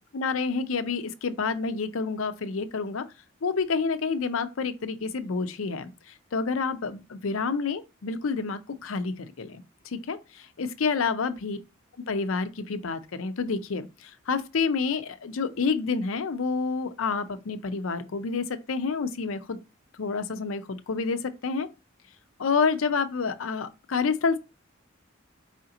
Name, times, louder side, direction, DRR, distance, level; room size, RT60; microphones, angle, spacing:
voice 1, 0.1-3.0 3.4-11.6 12.1-19.6 19.9-21.7 22.4-24.4, left 4 dB, 90° left, 0.6 m, -29 dB
4.9 x 2.8 x 3.7 m
head